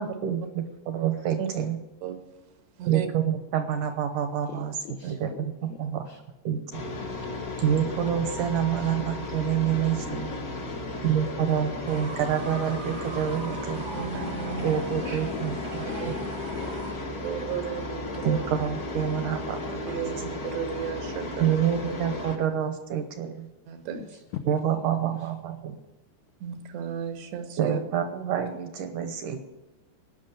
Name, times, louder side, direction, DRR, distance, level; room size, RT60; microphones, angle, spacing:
voice 1, 0.0-1.8 2.9-4.7 5.1-6.0 6.5-6.8 7.6-10.3 11.0-13.8 14.6-15.6 18.2-20.3 21.4-23.5 24.5-25.8 27.6-29.4, right 9 dB, 70° right, 7 dB, 2.0 m, -27 dB
voice 2, 4.5-6.2 9.9-11.1 14.9-17.0 23.9-24.4 24.7-25.3, left 9 dB, 85° left, 5 dB, 1.7 m, -42 dB
sound 1, 6.7-22.4, left 2 dB, 60° left, 0.9 m, -34 dB
Fowl / Bird, 11.9-16.9, right 3 dB, 45° right, 0.8 m, -41 dB
voice 3, 13.9-14.7 16.0-16.1 17.2-18.4 19.9-21.6 23.7-24.0 26.4-27.8, right 8 dB, 90° right, 5 dB, 3.8 m, -34 dB
18.0 x 6.2 x 9.0 m, 1.1 s
omnidirectional pair, 4.7 m